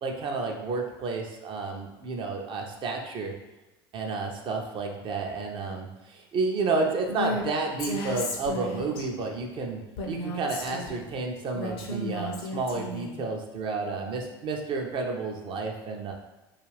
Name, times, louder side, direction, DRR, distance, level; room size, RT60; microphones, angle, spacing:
voice 1, 0.0-3.3 3.9-9.8 10.1-16.1, right 3 dB, 40° right, 1 dB, 0.5 m, -31 dB
Female speech woman speaking, 7.1-7.4 7.8-9.1 10.0-11.1 11.5-13.2, left 1 dB, 65° left, 0.5 m, -34 dB
2.4 x 2.3 x 3.2 m, 1.1 s
figure-of-eight pair, 70°, 14 cm